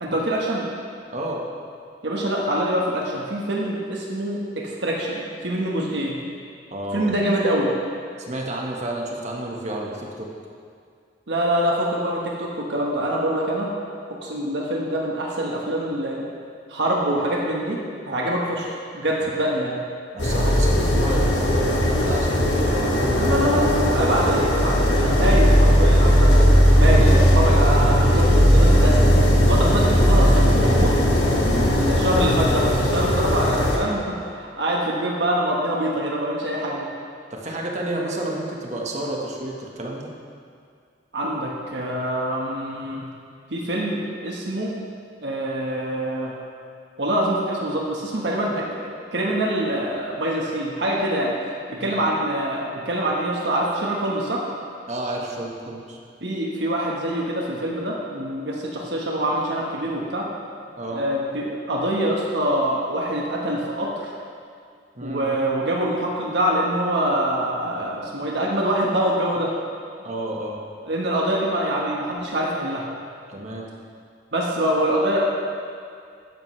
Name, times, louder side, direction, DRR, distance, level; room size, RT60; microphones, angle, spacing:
voice 1, 0.0-0.7 2.0-6.2 6.9-7.7 11.3-13.7 14.2-16.3 16.7-17.8 18.1-18.7 18.9-19.8 23.1-26.5 26.8-29.0 29.4-30.9 31.7-36.9 41.1-43.1 43.5-44.7 45.2-46.3 47.0-51.3 51.7-54.4 56.2-60.2 60.9-64.1 65.0-69.5 70.8-72.8 74.3-75.2, right 1 dB, 80° right, -3 dB, 1.4 m, -25 dB
voice 2, 1.1-1.4 6.7-7.1 8.2-10.3 19.2-19.3 20.1-23.9 26.9-27.2 31.4-31.7 37.3-40.1 51.8-52.0 54.9-56.0 60.8-61.0 64.9-65.3 70.0-70.6 73.3-73.6, right 1 dB, 40° right, -1 dB, 1.4 m, -30 dB
sound 1, 20.2-33.8, equal, 75° left, 1.8 m, -17 dB
13.5 x 10.5 x 3.3 m, 2.2 s
head